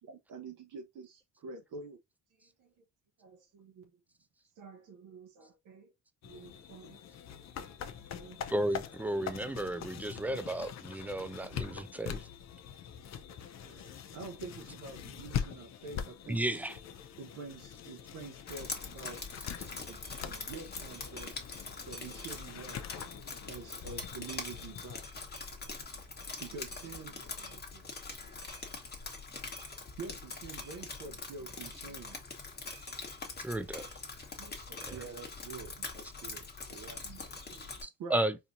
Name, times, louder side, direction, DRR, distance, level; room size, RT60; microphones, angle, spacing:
voice 1, 0.1-2.0 2.4-2.7 3.2-4.0 4.6-5.9 6.2-7.0 8.1-8.7 10.2-10.4 13.6-16.5 17.2-19.3 19.9-21.5 21.8-22.9 23.5-25.3 25.5-26.0 26.4-27.9 28.2-28.3 30.0-32.2 34.4-34.9 36.8-38.2, right 4 dB, 75° right, 0.8 m, -48 dB
sound 1, 6.2-25.0, left 8 dB, 55° left, 0.7 m, -43 dB
voice 2, 8.5-12.2 16.3-16.8 33.4-33.9 34.8-35.0 37.8-38.4, right 1 dB, 5° right, 0.4 m, -34 dB
Drip, 18.5-37.8, left 4 dB, 30° left, 1.2 m, -43 dB
voice 3, 34.9-37.0, right 7 dB, 60° right, 1.2 m, -48 dB
4.3 x 2.7 x 2.5 m
cardioid pair, 115°, 32 cm